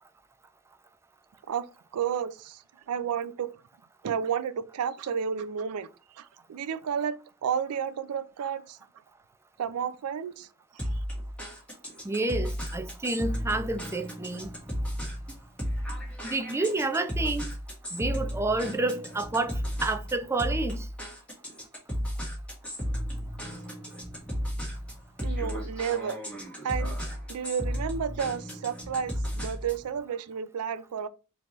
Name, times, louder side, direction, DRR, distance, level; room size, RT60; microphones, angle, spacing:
voice 1, 1.9-2.6 2.9-3.6 4.0-5.9 6.1-8.8 9.6-10.5 10.7-11.0 25.2-26.2 26.6-27.0 27.3-31.1, right 7 dB, 85° right, 0.4 m, -31 dB
sound 1, 10.8-29.9, equal, 5° left, 1.6 m, -34 dB
voice 2, 12.0-14.5 16.2-17.5 17.9-20.9, right 2 dB, 10° right, 0.3 m, -29 dB
4.2 x 2.8 x 3.0 m
head